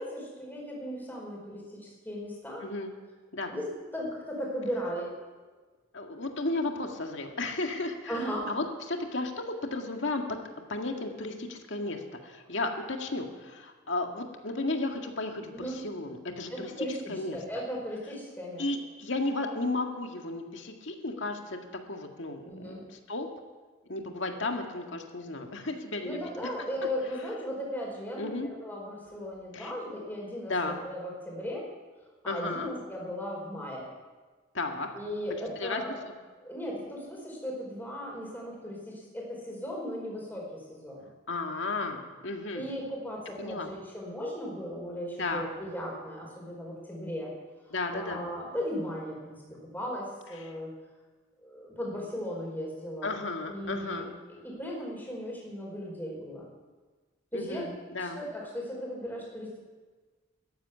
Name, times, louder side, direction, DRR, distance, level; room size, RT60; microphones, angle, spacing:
voice 1, 0.0-2.6 3.5-5.1 8.1-8.5 15.5-15.8 16.5-18.7 22.4-22.8 26.0-31.7 32.2-33.8 34.9-36.0 36.4-41.0 42.5-47.3 47.9-50.7 51.4-53.2 53.5-56.5 57.3-57.7 58.0-59.6, equal, 10° left, -2 dB, 4.8 m, -37 dB
voice 2, 2.6-2.9 3.3-3.5 5.9-10.2 10.7-15.5 15.8-16.7 17.1-17.4 18.6-21.6 21.9-23.3 23.9-26.2 28.2-28.5 29.5-29.7 30.5-30.8 32.3-32.7 34.5-34.9 35.6-35.8 41.3-42.7 43.4-43.7 45.2-45.5 47.7-48.2 53.0-54.1 57.3-58.2, left 2 dB, 65° left, 3 dB, 1.9 m, -34 dB
14.0 x 10.5 x 9.6 m, 1.3 s
head